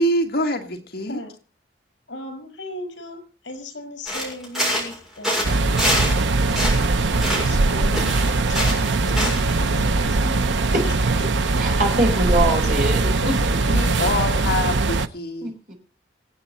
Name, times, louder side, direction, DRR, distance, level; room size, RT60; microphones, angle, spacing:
voice 1, 0.0-1.2 13.7-15.5, left 1 dB, 55° left, 4 dB, 1.8 m, -24 dB
voice 2, 2.1-6.6 7.1-8.2 8.5-8.6 9.0-10.9 11.4-11.5 12.4-13.5, left 1 dB, 80° left, 8 dB, 5.4 m, -37 dB
sound 1, 4.1-6.2 6.5-7.6 7.9-9.5, equal, ahead, 6.5 m, -25 dB
sound 2, 5.4-15.1, right 3 dB, 75° right, 0.8 m, -21 dB
voice 3, 10.7-11.2 11.6-13.1 15.4-15.7, right 1 dB, 45° right, 2 dB, 4.5 m, -23 dB
25.5 x 8.7 x 4.2 m, 0.34 s
head